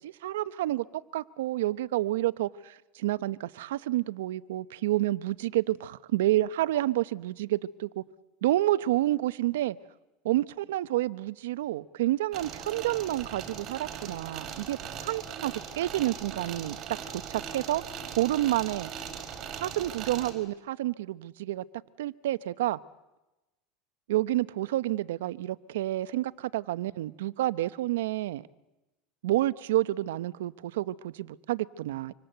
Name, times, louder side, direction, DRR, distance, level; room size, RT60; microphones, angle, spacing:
voice 1, 0.0-8.0 8.4-9.8 10.2-16.8 17.3-17.8 18.2-18.9 19.6-21.6 22.0-22.8 24.1-28.5 29.2-32.1, right 15 dB, 90° right, 17 dB, 0.8 m, -29 dB
sound 1, 12.3-20.3, right 7 dB, 40° right, 4.7 m, -40 dB
26.0 x 25.0 x 8.1 m, 1.0 s
supercardioid pair, 130°, 0 cm